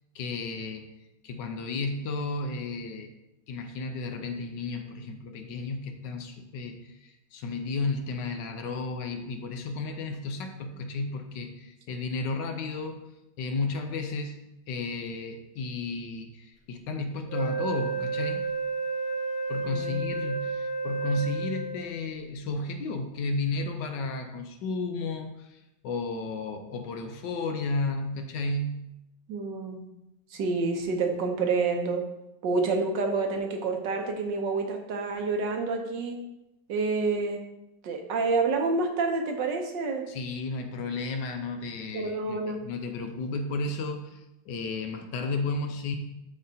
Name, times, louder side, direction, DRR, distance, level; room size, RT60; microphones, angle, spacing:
voice 1, 0.1-0.9 1.2-3.1 3.5-13.0 13.4-14.4 14.7-18.5 19.5-28.9 40.1-46.0, left 3 dB, 70° left, 6 dB, 1.3 m, -33 dB
Wind instrument woodwind instrument, 17.3-22.0, right 4 dB, 90° left, 3.6 m, -31 dB
voice 2, 19.6-20.0 29.3-29.8 30.3-32.0 32.4-36.2 36.7-37.4 37.8-40.1 41.9-42.6, right 4 dB, 70° right, 3 dB, 1.4 m, -28 dB
11.5 x 4.0 x 2.7 m, 0.89 s
omnidirectional pair, 2.1 m